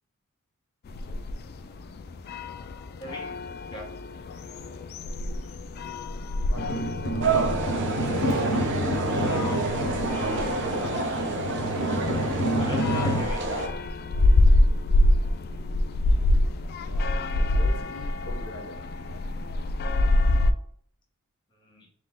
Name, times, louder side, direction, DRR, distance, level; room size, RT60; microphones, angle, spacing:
sound 1, 0.8-20.5, left 1 dB, 45° left, 0.3 m, -26 dB
voice 1, 3.0-3.4 3.7-3.8 12.2-13.6 21.7-21.9, left 1 dB, 20° left, -2 dB, 1.0 m, -39 dB
voice 2, 5.3-5.6 6.4-9.6 10.2-10.9 16.3-18.8, left 2 dB, 70° left, 1 dB, 1.1 m, -43 dB
sound 2, 6.5-13.2, equal, 85° left, 0.9 m, -29 dB
sound 3, 7.2-13.7, right 3 dB, 60° right, 0.7 m, -28 dB
5.8 x 2.3 x 3.6 m, 0.62 s
head